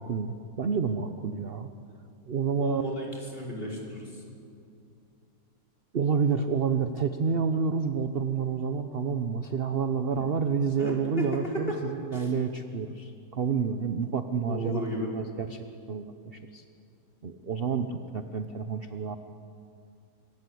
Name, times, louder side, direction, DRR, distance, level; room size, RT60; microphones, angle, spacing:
voice 1, 0.0-1.7 2.3-2.8 5.9-14.8 15.1-16.6 17.2-19.2, right 6 dB, 45° right, 8 dB, 0.9 m, -29 dB
voice 2, 2.6-4.2 10.8-11.3 11.7-11.8 12.1-12.3 14.5-15.1, left 1 dB, 30° left, -2 dB, 5.2 m, -34 dB
25.5 x 23.0 x 7.9 m, 2.5 s
omnidirectional pair, 1.8 m